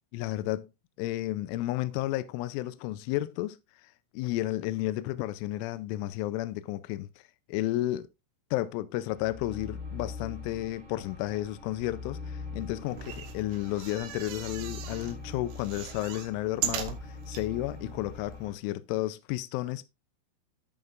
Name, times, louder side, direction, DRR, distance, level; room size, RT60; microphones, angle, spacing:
voice 1, 0.1-0.7 1.0-3.6 4.1-7.1 7.5-8.1 8.5-13.0 13.3-19.8, left 15 dB, 85° left, 3.1 m, -32 dB
sound 1, 9.1-18.5, left 3 dB, 30° right, 1.4 m, -43 dB
sound 2, 12.9-15.1 15.5-17.5 18.0-18.1 18.3-18.4, right 9 dB, 85° right, 3.7 m, -38 dB
15.0 x 5.5 x 2.4 m
omnidirectional pair, 5.5 m